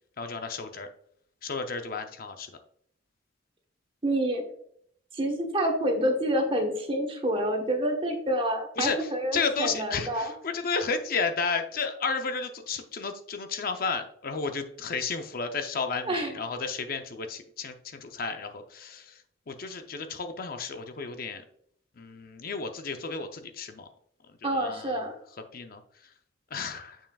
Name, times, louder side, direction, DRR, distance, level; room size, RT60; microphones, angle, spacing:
voice 1, 0.2-0.9 1.4-2.5 8.8-19.2 19.5-21.4 22.0-23.9 24.4-25.0 25.5-25.8 26.5-27.0, left 5 dB, 50° left, 6 dB, 0.6 m, -32 dB
voice 2, 4.0-4.4 5.1-10.3 16.0-16.4 24.4-25.1, right 1 dB, 30° right, 3 dB, 1.1 m, -28 dB
6.9 x 5.9 x 2.3 m, 0.66 s
head